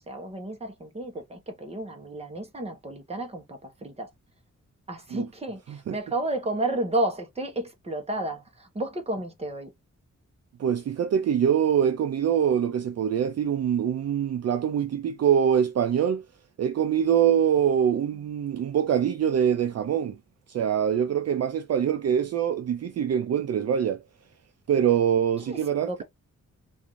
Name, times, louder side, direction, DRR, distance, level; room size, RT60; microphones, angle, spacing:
voice 1, 0.1-4.1 4.9-9.7 25.5-25.6 25.8-26.0, right 1 dB, 20° right, 1.0 m, -32 dB
voice 2, 10.6-16.2 16.6-20.2 20.5-24.0 24.7-25.9, right 8 dB, 55° right, 0.4 m, -24 dB
3.6 x 2.5 x 3.0 m
wide cardioid pair, 145°, 30 cm